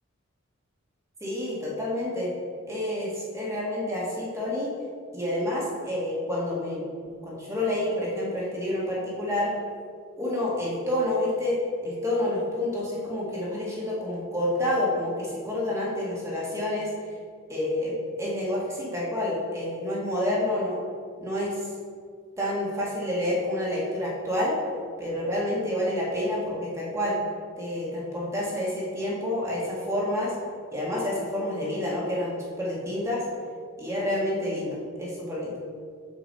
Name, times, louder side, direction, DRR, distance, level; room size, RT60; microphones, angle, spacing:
voice 1, 1.2-2.3 2.7-4.7 5.1-6.8 7.2-9.5 10.2-16.9 17.5-20.8 21.2-21.7 22.4-24.6 25.0-27.2 27.6-30.3 30.7-33.2 33.8-35.6, left 1 dB, 15° right, -5 dB, 1.8 m, -28 dB
7.1 x 6.9 x 4.2 m, 2.1 s
head